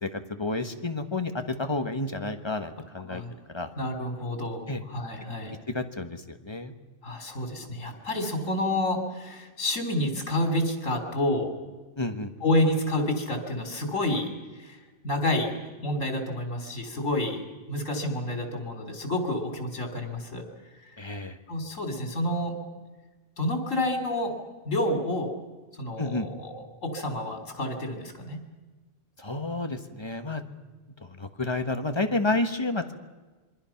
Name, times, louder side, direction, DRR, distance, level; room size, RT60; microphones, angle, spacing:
voice 1, 0.0-3.2 3.5-3.7 4.7-4.8 5.7-6.7 12.0-12.3 21.0-21.4 26.0-26.3 29.2-30.4 31.0-32.9, left 2 dB, 20° left, 7 dB, 1.3 m, -30 dB
voice 2, 3.8-4.6 4.9-5.5 7.0-11.5 12.4-14.3 14.6-14.8 15.0-15.5 15.8-17.4 17.7-20.4 21.5-22.6 23.4-24.3 24.7-25.3 25.8-26.5 26.8-28.4, left 1 dB, 75° left, 3 dB, 3.7 m, -29 dB
27.0 x 23.0 x 5.9 m, 1.3 s
omnidirectional pair, 1.3 m